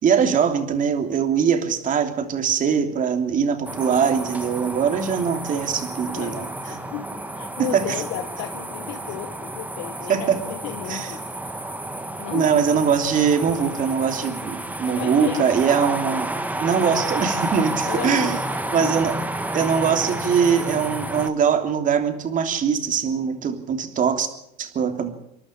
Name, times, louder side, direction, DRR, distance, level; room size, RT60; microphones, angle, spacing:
voice 1, 0.0-6.5 6.7-6.9 7.6-8.0 10.1-10.4 10.9-11.1 12.3-16.3 16.6-18.4 18.7-19.1 19.5-24.3 24.6-25.1, right 7 dB, 40° right, 6 dB, 3.2 m, -22 dB
sound 1, 3.6-21.3, right 1 dB, 10° right, 1.9 m, -30 dB
voice 2, 6.0-11.2 12.2-12.5 14.9-15.5 17.9-18.9, left 12 dB, 70° left, 6 dB, 1.7 m, -34 dB
27.5 x 11.5 x 8.6 m, 0.75 s
supercardioid pair, 100°, 20 cm